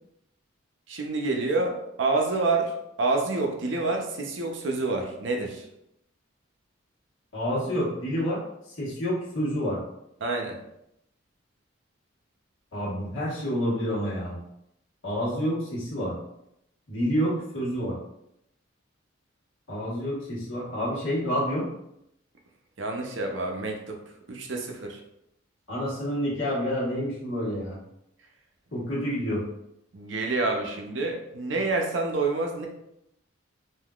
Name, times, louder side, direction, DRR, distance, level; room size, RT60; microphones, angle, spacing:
voice 1, 0.9-2.7 3.0-5.6 10.2-10.6 22.8-24.0 24.3-25.0 29.9-32.7, right 3 dB, 65° right, 2 dB, 0.6 m, -28 dB
voice 2, 7.3-8.4 8.8-9.8 12.7-14.4 15.0-16.1 16.9-18.0 19.7-21.7 25.7-27.8 28.7-29.4, equal, 75° left, -7 dB, 1.4 m, -28 dB
3.6 x 2.6 x 2.3 m, 0.80 s
head